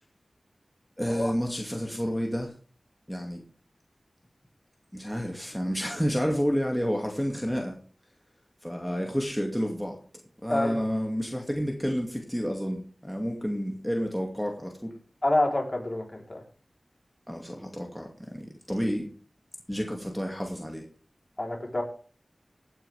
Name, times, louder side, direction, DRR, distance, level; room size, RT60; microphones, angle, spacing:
voice 1, 1.0-2.5 3.1-3.4 4.9-7.8 8.6-10.0 10.4-14.9 17.3-19.1 19.7-20.8, equal, ahead, 0 dB, 2.4 m, -30 dB
voice 2, 15.2-16.4 21.4-21.8, left 1 dB, 35° left, 0 dB, 4.1 m, -27 dB
16.5 x 9.1 x 3.6 m, 0.40 s
wide cardioid pair, 50°, 0 cm